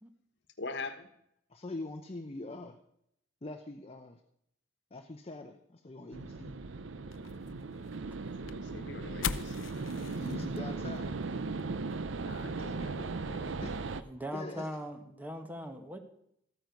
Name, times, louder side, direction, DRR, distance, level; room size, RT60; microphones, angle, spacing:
voice 1, 0.6-1.1 8.4-9.7 12.2-13.4, left 3 dB, 65° left, 8 dB, 1.3 m, -43 dB
voice 2, 1.5-2.8 3.4-4.1 4.9-6.5 10.2-11.1 12.6-12.9 13.4-13.8 14.3-14.6, left 2 dB, 30° left, 5 dB, 0.8 m, -43 dB
sound 1, 6.1-14.0, right 3 dB, 70° right, 0.6 m, -38 dB
sound 2, 7.1-13.8, left 7 dB, 85° left, 0.6 m, -44 dB
voice 3, 13.9-16.0, equal, 10° right, 5 dB, 1.3 m, -40 dB
13.5 x 9.3 x 5.3 m, 0.75 s
head